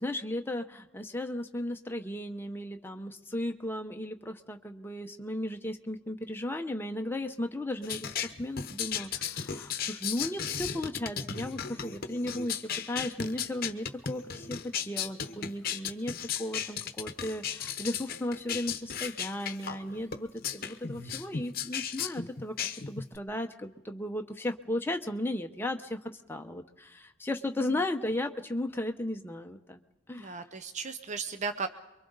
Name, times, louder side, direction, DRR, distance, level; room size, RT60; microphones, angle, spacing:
voice 1, 0.0-16.1 16.4-22.6 22.9-29.8 30.1-30.4, left 1 dB, 10° left, 5 dB, 0.9 m, -35 dB
sound 1, 7.8-23.2, left 7 dB, 45° left, 1.0 m, -35 dB
voice 2, 30.2-31.7, right 4 dB, 35° right, 9 dB, 0.7 m, -36 dB
28.5 x 23.5 x 4.0 m, 1.0 s
head